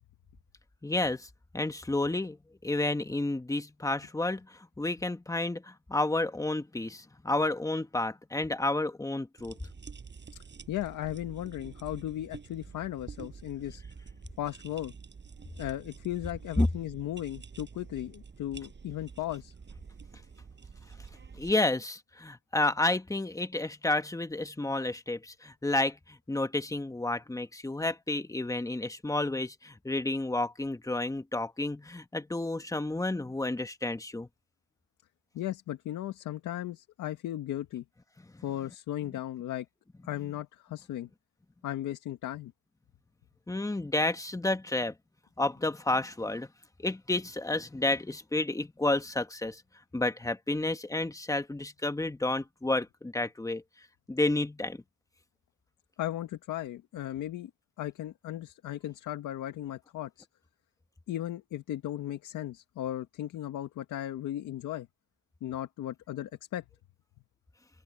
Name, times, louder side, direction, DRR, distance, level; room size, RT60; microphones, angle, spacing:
voice 1, 0.8-1.3 1.5-2.4 2.6-9.6 16.6-16.7 21.4-34.3 38.3-38.4 43.5-44.9 45.4-46.5 46.8-49.6 49.9-53.6 54.1-54.8, left 2 dB, 10° left, 1.5 m, -30 dB
sound 1, 9.4-21.5, right 5 dB, 35° right, 7.2 m, -48 dB
voice 2, 10.3-13.8 14.4-14.9 15.6-19.5 35.3-37.9 38.4-39.7 40.0-41.1 41.6-42.5 56.0-57.5 57.8-60.3 61.1-64.9 65.4-66.6, left 13 dB, 80° left, 2.0 m, -36 dB
open air
cardioid pair, 90°, 30 cm